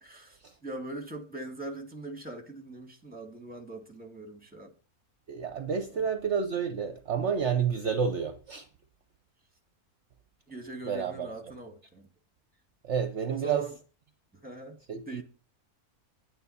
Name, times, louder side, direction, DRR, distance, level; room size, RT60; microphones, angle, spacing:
voice 1, 0.0-4.7 5.9-6.1 10.5-12.1 13.3-13.8 14.3-14.8 15.1-15.2, right 2 dB, 5° right, 1.8 m, -41 dB
voice 2, 5.3-8.7 10.9-11.3 12.8-13.6 14.9-15.2, right 7 dB, 55° right, 1.0 m, -30 dB
9.7 x 9.4 x 4.2 m
omnidirectional pair, 1.6 m